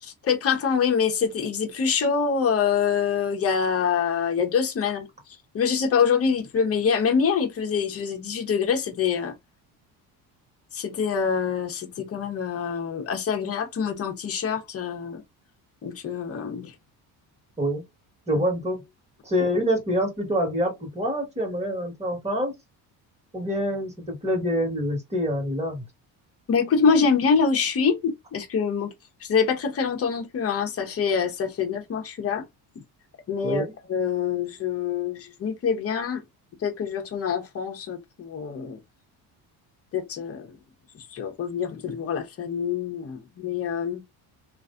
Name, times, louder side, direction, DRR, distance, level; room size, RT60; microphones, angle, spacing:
voice 1, 0.0-9.3 10.7-15.2 15.8-16.7 26.5-28.9 29.2-32.4 32.7-32.8 33.3-33.6 33.9-36.2 36.6-38.8 39.9-40.6 40.9-44.0, left 6 dB, 35° left, 1.0 m, -25 dB
voice 2, 18.3-18.8 19.2-22.5 23.3-25.8 33.4-33.7, equal, 15° right, 1.7 m, -26 dB
3.1 x 2.6 x 2.5 m
cardioid pair, 145°, 40 cm